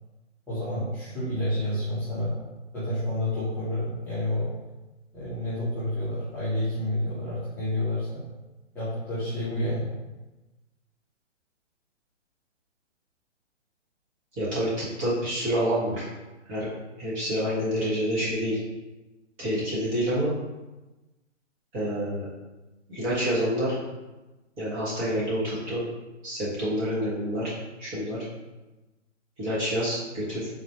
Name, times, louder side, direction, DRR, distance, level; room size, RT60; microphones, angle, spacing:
voice 1, 0.5-2.3 2.7-4.5 5.1-8.2 8.7-9.9, left 1 dB, 5° left, -15 dB, 1.2 m, -29 dB
voice 2, 14.3-16.1 16.5-16.7 17.0-18.6 19.4-20.3 21.7-22.3 22.9-23.8 24.6-25.8 26.2-27.5 27.8-28.2 29.4-30.5, equal, 20° right, -9 dB, 1.5 m, -27 dB
4.2 x 3.1 x 2.9 m, 1.1 s
hypercardioid pair, 145°, 37 cm